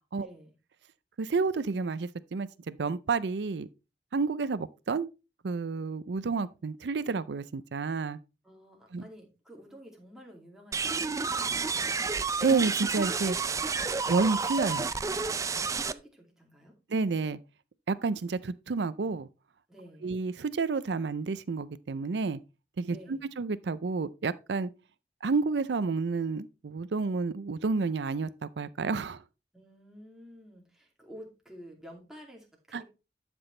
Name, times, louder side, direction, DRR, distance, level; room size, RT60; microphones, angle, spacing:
voice 1, 0.2-0.5 8.4-11.6 15.5-16.7 19.7-20.1 22.9-23.2 29.5-32.8, equal, 5° right, 2.6 m, -51 dB
voice 2, 1.2-3.7 4.1-5.1 5.4-8.2 8.9-9.0 12.4-13.4 14.1-14.9 16.9-17.4 17.9-19.3 20.0-22.4 22.8-24.7 25.2-29.2 32.7-32.8, right 4 dB, 75° right, 0.5 m, -30 dB
sound 1, 10.7-15.9, right 4 dB, 20° right, 0.4 m, -30 dB
12.0 x 6.1 x 3.2 m
head